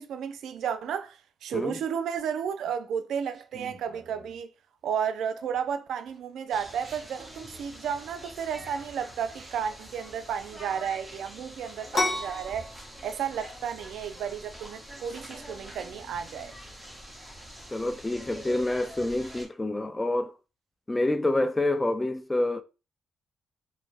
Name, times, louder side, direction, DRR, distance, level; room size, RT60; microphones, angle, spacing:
voice 1, 0.0-4.5 4.8-12.7 13.0-16.5, right 8 dB, 80° right, 0.3 m, -33 dB
sound 1, 3.3-4.4 5.2-5.6 6.1-9.7, right 3 dB, 50° right, 0.8 m, -52 dB
sound 2, 6.5-19.5, equal, 10° right, 0.8 m, -45 dB
sound 3, 11.9-19.3, left 1 dB, 45° left, 0.8 m, -36 dB
voice 2, 17.7-20.3 20.9-22.6, left 2 dB, 15° left, 0.3 m, -27 dB
2.6 x 2.1 x 3.2 m
cardioid pair, 85°, 0 cm